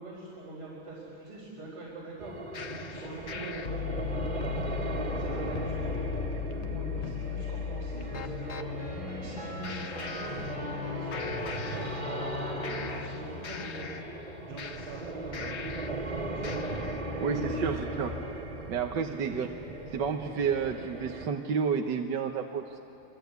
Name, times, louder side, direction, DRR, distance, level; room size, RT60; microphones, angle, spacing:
voice 1, 0.0-3.6 4.0-8.8 9.2-13.9 14.5-17.8 19.1-19.5, right 2 dB, 85° right, -6 dB, 5.6 m, -43 dB
sound 1, 2.2-21.3, right 1 dB, 25° right, 2.2 m, -38 dB
sound 2, 2.5-8.7 9.6-10.9 11.1-12.3 12.6-16.1 16.4-17.1, left 7 dB, 50° left, 0.8 m, -38 dB
sound 3, 8.1-13.9, left 3 dB, 80° left, 7.5 m, -38 dB
voice 2, 17.2-18.1 18.7-19.5 19.9-22.8, right 6 dB, 60° right, 4 dB, 1.5 m, -30 dB
29.0 x 23.0 x 8.2 m, 2.7 s
omnidirectional pair, 2.4 m